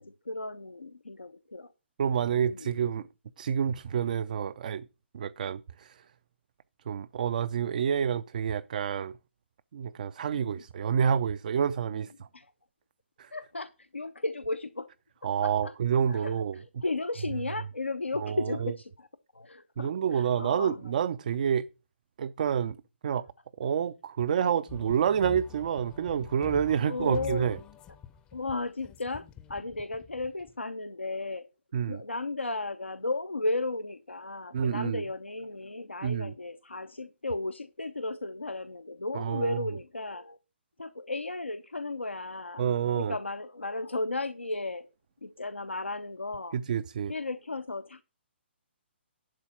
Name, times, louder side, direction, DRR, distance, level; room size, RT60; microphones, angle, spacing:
voice 1, 0.0-1.7 2.4-2.7 10.3-10.6 11.9-12.0 12.3-12.5 13.3-14.9 15.4-15.7 16.1-19.1 19.3-21.0 26.9-27.5 28.3-31.5 31.9-40.4 40.8-42.7 42.9-44.9 45.2-46.6 47.1-48.0, left 2 dB, 80° left, 0.6 m, -35 dB
voice 2, 2.0-3.1 3.4-4.9 5.1-6.0 6.9-9.1 9.7-12.3 13.2-13.3 15.2-16.6 18.2-18.7 19.8-21.7 22.2-22.8 23.0-23.3 23.6-27.6 31.7-32.0 34.5-35.0 36.0-36.3 39.1-39.6 42.6-43.2 46.5-47.1, right 8 dB, 45° right, 0.4 m, -28 dB
sound 1, 24.7-30.5, left 10 dB, 15° left, 0.6 m, -46 dB
11.0 x 4.1 x 7.0 m
figure-of-eight pair, 130°, 6 cm